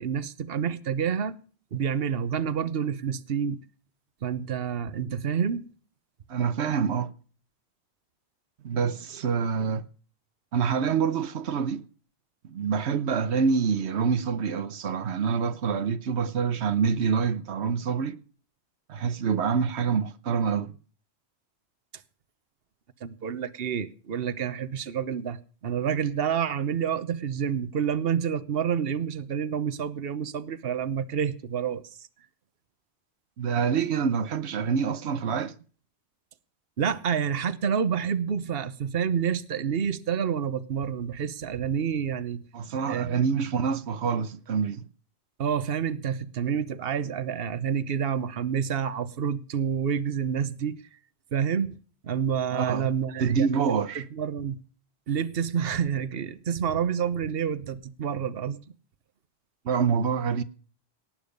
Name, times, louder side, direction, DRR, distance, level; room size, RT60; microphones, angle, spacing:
voice 1, 0.0-1.4 1.7-3.6 4.2-5.7 23.0-32.1 36.8-42.4 42.8-43.2 45.4-50.8 51.3-51.8 52.0-54.6 55.1-58.6, right 7 dB, 65° right, 1.1 m, -28 dB
voice 2, 6.3-7.1 8.6-9.8 10.5-11.8 12.5-18.2 18.9-20.7 33.4-35.5 42.5-44.8 52.5-52.9 53.2-54.1 59.6-60.4, right 6 dB, 90° right, 1.1 m, -26 dB
18.5 x 9.0 x 5.2 m
omnidirectional pair, 1.1 m